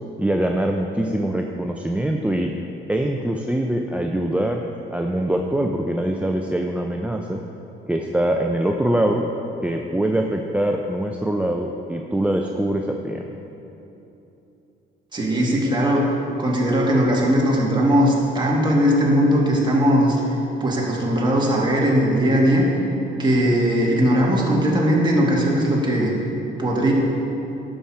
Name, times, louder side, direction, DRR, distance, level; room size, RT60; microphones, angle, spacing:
voice 1, 0.2-2.5 2.9-4.6 4.9-7.4 7.9-9.2 9.6-13.2, right 1 dB, 5° right, 2 dB, 0.5 m, -23 dB
voice 2, 15.1-16.1 16.4-20.4 20.6-22.7 23.2-26.1 26.6-26.9, equal, 25° right, -3 dB, 2.1 m, -19 dB
11.0 x 5.9 x 4.9 m, 3.0 s
cardioid pair, 90°, 20 cm